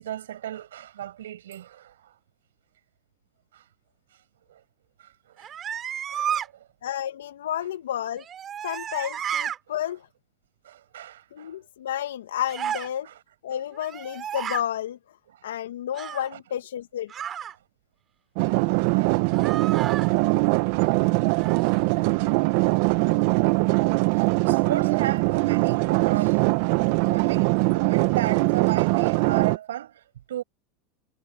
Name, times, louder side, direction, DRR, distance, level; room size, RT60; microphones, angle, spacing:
voice 1, 0.0-2.2 3.5-3.7 4.5-4.6 5.0-5.5 6.1-6.7 9.7-9.9 10.6-11.6 13.0-13.2 15.3-15.4 16.3-16.4 18.7-19.2 22.0-22.2 24.1-26.5 26.9-30.4, right 12 dB, 85° right, 7.6 m, -36 dB
sound 1, 5.4-6.5 8.2-9.6 12.5-12.9 13.7-14.6 15.9-16.3 17.1-17.6 19.3-20.1 21.4-21.8, right 9 dB, 35° right, 6.6 m, -32 dB
voice 2, 6.8-8.3 8.6-10.1 11.3-13.1 13.4-15.0 15.4-17.4, left 11 dB, 85° left, 1.8 m, -31 dB
sound 2, 18.4-29.6, right 25 dB, 65° right, 1.0 m, -22 dB
hypercardioid pair, 100°, 0 cm